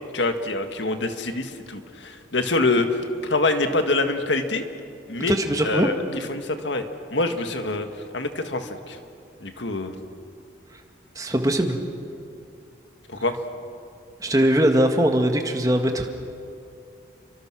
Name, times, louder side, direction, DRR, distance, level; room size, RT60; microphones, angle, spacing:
voice 1, 0.1-4.7 5.1-5.4 5.6-6.0 6.3-6.9 7.1-7.9 8.1-9.0 9.4-9.9 13.1-13.4, left 2 dB, 80° left, 7 dB, 1.8 m, -25 dB
voice 2, 5.3-5.9 11.2-11.8 14.2-16.1, right 1 dB, 20° right, 4 dB, 1.8 m, -21 dB
30.0 x 24.0 x 6.2 m, 2.5 s
head